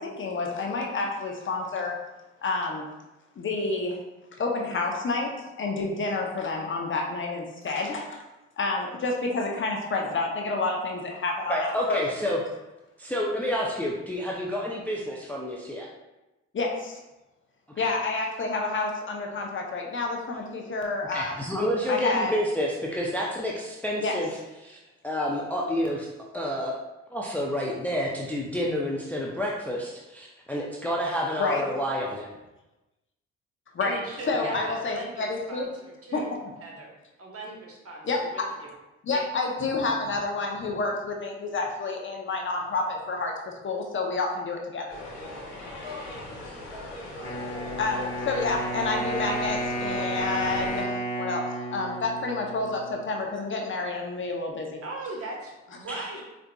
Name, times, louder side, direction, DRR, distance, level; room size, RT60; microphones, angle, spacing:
voice 1, 0.0-2.0 2.4-2.9 3.4-4.0 4.4-8.2 8.6-12.0 16.5-17.0 17.8-21.4 21.9-22.3 24.0-24.2 31.4-31.6 33.7-35.7 36.1-36.2 38.0-38.2 39.0-43.3 43.6-44.9 47.8-51.4 51.7-54.8, left 3 dB, 40° left, 1 dB, 0.7 m, -29 dB
voice 2, 11.5-12.4 13.0-15.9 17.8-17.9 21.1-24.3 24.6-24.8 25.0-26.1 26.3-26.7 27.1-32.3 34.3-34.5 55.9-56.1, equal, 5° left, -3 dB, 0.4 m, -29 dB
voice 3, 33.8-36.3 36.6-36.9 37.2-38.7 39.1-39.2 54.8-56.2, right 2 dB, 50° right, -1 dB, 1.0 m, -39 dB
sound 1, 44.9-50.8, left 2 dB, 85° left, 1.1 m, -39 dB
Wind instrument woodwind instrument, 47.2-53.2, right 1 dB, 20° left, 1.2 m, -32 dB
4.7 x 2.5 x 2.2 m, 1.0 s
supercardioid pair, 70°, 29 cm